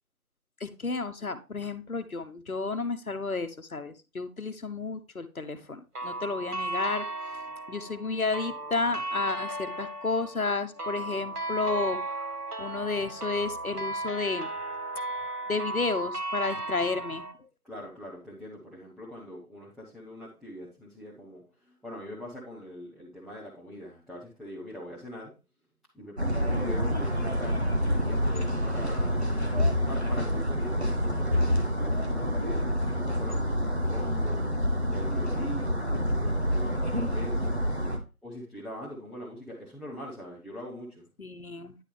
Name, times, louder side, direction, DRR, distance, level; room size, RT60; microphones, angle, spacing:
voice 1, 0.6-7.0 7.7-12.3 12.6-14.5 15.5-17.5 41.2-41.7, left 3 dB, 70° left, 9 dB, 1.0 m, -32 dB
sound 1, 6.0-17.3, right 2 dB, 90° right, 1.5 m, -35 dB
voice 2, 17.6-25.3 25.9-29.3 29.9-32.7 32.9-34.5 34.9-37.7 38.2-41.1, equal, ahead, -7 dB, 0.8 m, -42 dB
sound 2, 26.2-38.0, equal, 45° right, 1.2 m, -27 dB
9.9 x 4.9 x 3.3 m, 0.31 s
figure-of-eight pair, 175°, 45 cm